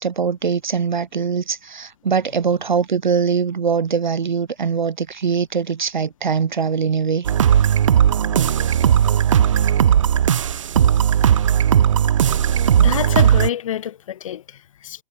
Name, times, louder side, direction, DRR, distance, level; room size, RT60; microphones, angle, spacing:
voice 1, 0.0-7.3, right 6 dB, 45° right, 1.6 m, -22 dB
sound 1, 7.2-13.5, right 9 dB, 30° right, 1.5 m, -16 dB
voice 2, 11.3-11.7 12.8-15.0, left 10 dB, 30° left, 3.9 m, -28 dB
figure-of-eight pair, 140°, 31 cm